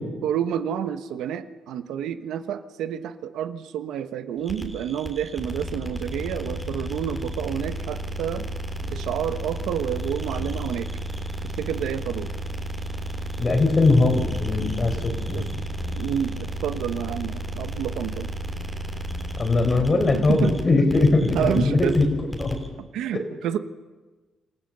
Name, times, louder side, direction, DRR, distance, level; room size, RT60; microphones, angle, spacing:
voice 1, 0.2-8.4 8.9-10.9 11.4-12.3 15.3-15.5 15.9-18.3 20.3-20.5 21.3-22.0 22.8-23.6, right 9 dB, 85° right, 10 dB, 1.1 m, -29 dB
sound 1, 4.4-22.7, right 1 dB, ahead, 3.4 m, -32 dB
voice 2, 13.4-15.4 19.4-22.1 22.4-22.6 23.1-23.2, left 3 dB, 30° left, 6 dB, 4.2 m, -20 dB
27.0 x 15.5 x 6.8 m, 1.3 s
cardioid pair, 110°, 0 cm